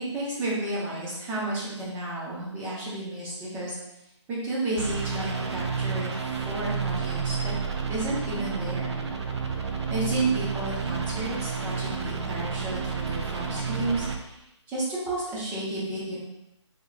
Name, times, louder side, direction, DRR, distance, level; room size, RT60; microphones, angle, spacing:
voice 1, 0.1-3.8 4.3-6.1 6.5-7.5 7.9-9.0 9.9-14.4 14.7-16.2, right 2 dB, 10° right, -8 dB, 0.9 m, -32 dB
sound 1, 4.8-14.2, right 5 dB, 60° right, 0.5 m, -30 dB
3.1 x 2.5 x 4.0 m, 0.91 s
figure-of-eight pair, 150°, 16 cm